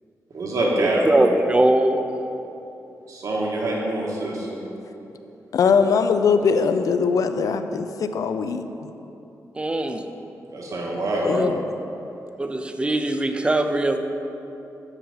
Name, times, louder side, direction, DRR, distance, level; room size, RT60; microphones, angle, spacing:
voice 1, 0.3-1.1 3.1-4.5 10.5-11.3, right 1 dB, 65° right, -3 dB, 1.5 m, -25 dB
voice 2, 1.0-2.0 9.5-10.1 11.3-11.5 12.4-14.0, right 1 dB, 15° right, 7 dB, 0.5 m, -21 dB
voice 3, 5.5-8.7 11.1-11.6, left 5 dB, 70° left, 9 dB, 0.4 m, -21 dB
7.2 x 5.8 x 5.5 m, 2.9 s
wide cardioid pair, 105°, 6 cm